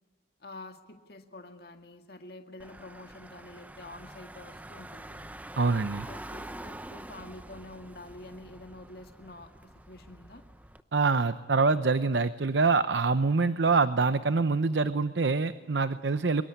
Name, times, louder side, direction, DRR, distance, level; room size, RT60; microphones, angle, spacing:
voice 1, 0.4-5.3 6.1-10.4, left 2 dB, 55° left, 5 dB, 2.0 m, -47 dB
Car / Engine, 2.6-10.8, right 1 dB, 10° right, 0.7 m, -46 dB
voice 2, 5.6-6.1 10.9-16.4, right 4 dB, 75° right, 12 dB, 0.8 m, -25 dB
23.5 x 22.5 x 10.0 m, 1.4 s
head